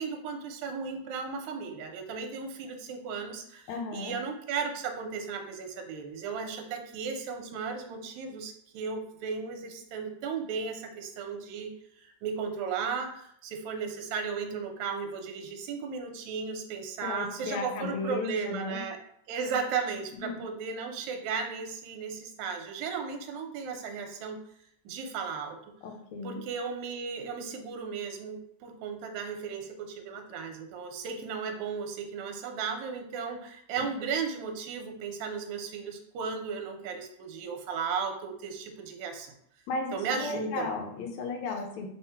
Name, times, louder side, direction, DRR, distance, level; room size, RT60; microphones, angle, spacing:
voice 1, 0.0-19.0 19.3-24.4 24.9-25.6 26.2-39.3 39.9-40.7, right 5 dB, 80° right, 4 dB, 1.9 m, -35 dB
voice 2, 3.7-4.2 17.0-18.8 20.2-20.5 25.8-26.4 33.8-33.9 39.7-41.9, left 3 dB, 75° left, 2 dB, 1.9 m, -35 dB
5.6 x 2.1 x 4.3 m, 0.69 s
omnidirectional pair, 3.3 m